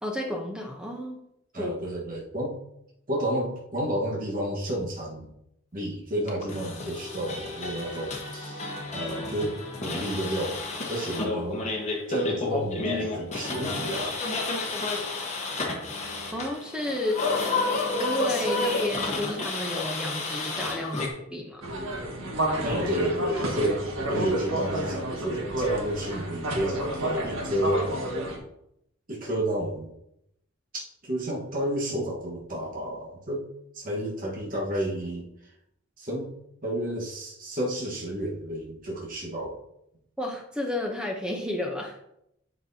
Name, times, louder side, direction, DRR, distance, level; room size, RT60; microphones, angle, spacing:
voice 1, 0.0-1.2 1.6-1.7 16.3-17.2 18.0-21.7 40.2-42.0, left 1 dB, 5° right, 1 dB, 0.7 m, -32 dB
voice 2, 1.5-2.5 3.1-5.3 5.7-8.6 8.9-11.6 12.1-14.1 22.6-23.8 24.1-28.1 29.1-29.9 30.7-33.4 33.7-35.2 36.0-36.3 36.6-39.6, right 1 dB, 40° right, -3 dB, 1.3 m, -31 dB
sound 1, 6.3-21.1, left 3 dB, 35° left, 1.2 m, -31 dB
sound 2, 21.6-28.4, right 1 dB, 80° right, 1.4 m, -30 dB
7.8 x 5.9 x 2.7 m, 0.79 s
head